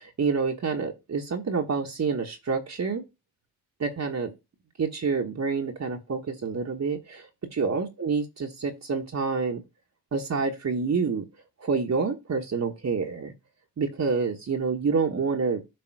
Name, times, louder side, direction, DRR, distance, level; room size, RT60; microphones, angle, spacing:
voice 1, 0.0-3.0 3.8-4.3 4.8-7.3 7.5-9.6 10.1-11.3 11.6-13.3 13.8-15.7, right 5 dB, 40° right, 1.4 m, -28 dB
7.9 x 3.4 x 4.7 m
supercardioid pair, 55°, 40 cm